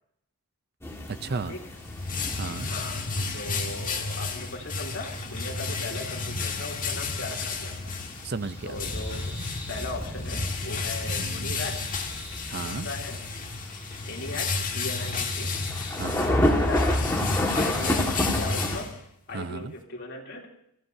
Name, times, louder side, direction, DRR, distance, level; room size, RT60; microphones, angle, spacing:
sound 1, 0.8-18.8, left 1 dB, 10° left, 1.8 m, -31 dB
voice 1, 1.1-1.6 2.3-2.7 8.2-8.8 11.2-11.5 12.5-12.9 15.9-16.5 19.3-19.7, right 4 dB, 45° right, 13 dB, 0.5 m, -34 dB
sound 2, 1.5-19.3, left 4 dB, 40° left, 1.7 m, -32 dB
voice 2, 2.5-3.1 3.3-7.9 8.6-9.3 9.7-11.9 12.6-13.2 14.0-15.5 16.4-17.1 17.5-18.9 19.3-20.5, left 2 dB, 55° left, -1 dB, 3.1 m, -38 dB
sound 3, 8.4-17.8, left 1 dB, 10° right, 4.9 m, -47 dB
26.0 x 16.0 x 2.7 m, 0.71 s
head